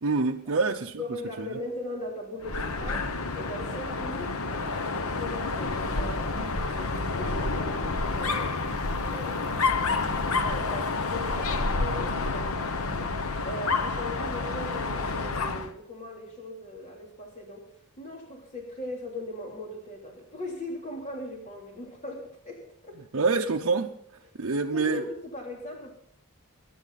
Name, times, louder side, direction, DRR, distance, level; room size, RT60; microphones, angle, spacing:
voice 1, 0.0-1.0 1.4-1.5 23.1-23.9 24.4-25.0, right 4 dB, 60° right, 0.7 m, -26 dB
voice 2, 1.0-8.6 9.0-9.5 10.4-17.6 18.0-23.0 24.2-24.3 24.7-25.9, left 1 dB, 35° left, 3.1 m, -39 dB
Dog, 2.4-15.7, left 3 dB, 70° left, 1.0 m, -29 dB
22.0 x 11.0 x 4.1 m
head